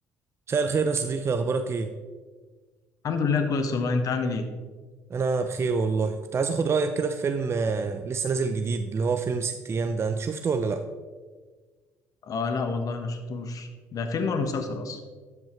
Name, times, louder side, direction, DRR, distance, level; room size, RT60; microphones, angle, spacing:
voice 1, 0.5-1.9 5.1-10.8, right 4 dB, 35° right, 8 dB, 0.6 m, -26 dB
voice 2, 3.0-4.4 12.2-15.0, left 4 dB, 50° left, 7 dB, 1.3 m, -28 dB
13.0 x 7.4 x 3.2 m, 1.4 s
hypercardioid pair, 55°, 7 cm